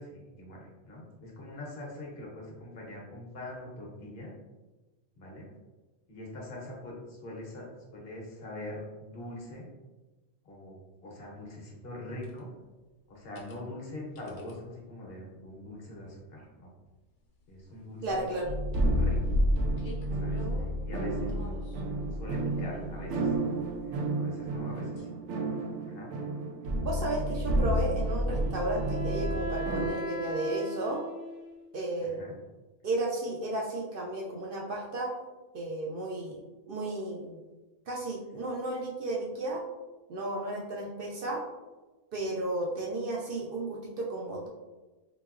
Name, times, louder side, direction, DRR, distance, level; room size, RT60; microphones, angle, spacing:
voice 1, 0.0-4.3 5.1-5.5 6.1-7.6 7.9-9.7 10.4-12.5 13.1-16.7 17.5-18.3 18.9-19.2 20.2-21.3 22.1-23.3 23.9-25.1 25.9-26.1 27.1-27.3 32.0-32.3, left 1 dB, 60° left, -3 dB, 1.1 m, -43 dB
sound 1, 12.2-12.4 13.2-13.6 14.2-14.5 15.7-16.0 16.4-16.5 16.8-17.8 18.0-20.7 21.3-21.8 22.5-23.4 24.6-25.2 25.7-25.8 28.2-28.3, left 1 dB, 85° left, 1.0 m, -38 dB
voice 2, 18.0-18.5 26.8-31.0 31.7-32.3 32.8-35.1 35.5-36.4 36.7-37.4 37.9-39.6 40.1-41.4 42.1-44.5, right 2 dB, 60° right, -2 dB, 0.7 m, -33 dB
sound 2, 18.4-29.9, right 1 dB, 85° right, 0.9 m, -31 dB
Wind instrument woodwind instrument, 28.0-31.6, right 1 dB, 35° left, 0.6 m, -38 dB
3.7 x 3.0 x 2.4 m, 1.2 s
omnidirectional pair, 1.2 m